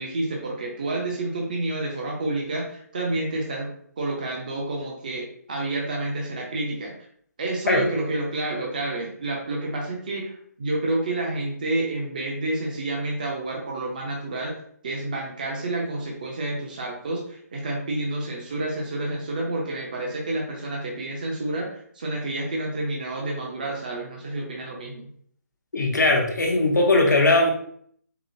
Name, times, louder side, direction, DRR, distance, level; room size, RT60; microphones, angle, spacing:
voice 1, 0.0-3.7 4.0-6.9 7.4-14.5 14.8-25.1, right 2 dB, 30° right, -1 dB, 0.6 m, -29 dB
voice 2, 25.7-27.5, left 2 dB, 85° left, 1 dB, 0.9 m, -19 dB
4.7 x 2.0 x 2.6 m, 0.63 s
hypercardioid pair, 175°, 9 cm